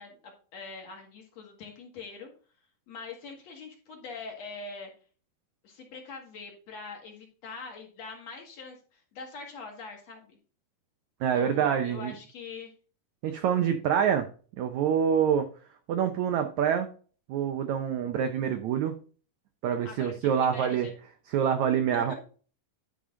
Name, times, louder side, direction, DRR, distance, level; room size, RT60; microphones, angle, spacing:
voice 1, 0.0-2.3 2.9-4.9 5.6-10.4 11.3-12.7 19.8-20.9 21.9-22.2, left 4 dB, 55° left, 2 dB, 2.3 m, -43 dB
voice 2, 11.2-12.1 13.2-14.3 14.6-15.5 15.9-16.9 17.3-19.0 19.6-20.9 21.3-22.1, right 8 dB, 85° right, 7 dB, 1.6 m, -26 dB
10.5 x 5.0 x 3.8 m, 0.39 s
omnidirectional pair, 4.3 m